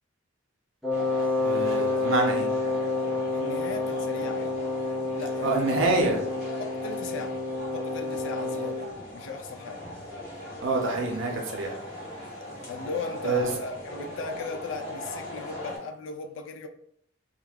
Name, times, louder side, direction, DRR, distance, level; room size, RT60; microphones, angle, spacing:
Wind instrument woodwind instrument, 0.8-8.9, left 3 dB, ahead, 0.4 m, -29 dB
sound 1, 0.9-15.8, left 1 dB, 35° left, 1.0 m, -39 dB
voice 1, 1.4-2.5 5.4-6.2 10.6-11.7 13.2-13.5, right 3 dB, 75° right, 0.7 m, -26 dB
voice 2, 3.3-4.7 5.1-5.8 6.6-7.4 7.7-9.9 12.7-16.7, left 3 dB, 70° left, 0.4 m, -37 dB
2.3 x 2.1 x 3.3 m
head